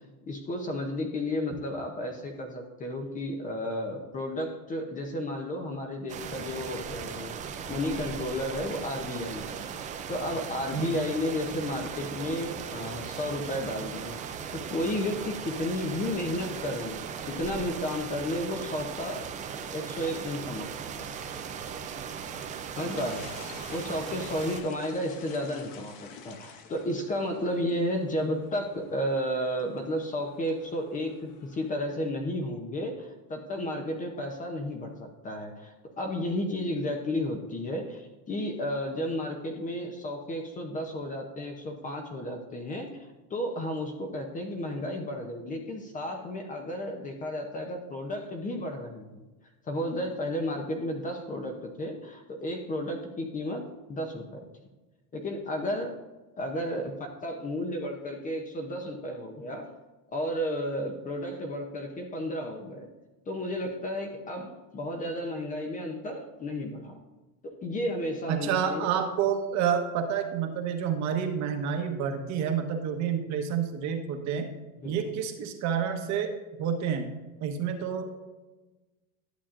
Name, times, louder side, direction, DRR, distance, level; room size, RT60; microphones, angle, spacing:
voice 1, 0.3-7.4 7.7-14.2 14.5-19.3 19.7-20.7 21.0-21.2 22.8-23.3 23.7-49.2 49.7-53.6 53.9-54.4 55.1-56.0 56.4-59.7 60.1-62.9 63.3-67.0 67.4-68.9 74.8-75.1, left 1 dB, 20° left, 3 dB, 0.7 m, -33 dB
sound 1, 6.1-24.6, right 7 dB, 20° right, 0.4 m, -38 dB
sound 2, 22.7-31.7, left 7 dB, 50° left, 1.0 m, -50 dB
voice 2, 68.3-74.5 74.8-76.3 76.6-77.1 77.4-78.1, right 8 dB, 40° right, 5 dB, 1.1 m, -29 dB
11.5 x 7.1 x 2.5 m, 1.2 s
supercardioid pair, 135°, 43 cm